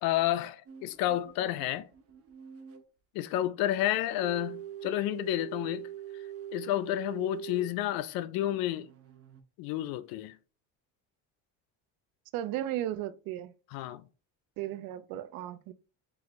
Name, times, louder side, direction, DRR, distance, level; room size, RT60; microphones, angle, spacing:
voice 1, 0.0-1.9 3.1-5.9 6.5-8.9 9.6-10.4 13.7-14.0, left 13 dB, 85° left, 0.5 m, -30 dB
sound 1, 0.7-2.8 3.9-7.8 8.5-9.4, right 10 dB, 45° right, 0.8 m, -44 dB
voice 2, 12.3-13.5 14.6-15.7, right 13 dB, 85° right, 0.5 m, -35 dB
4.7 x 2.5 x 3.0 m
cardioid pair, 130°, 34 cm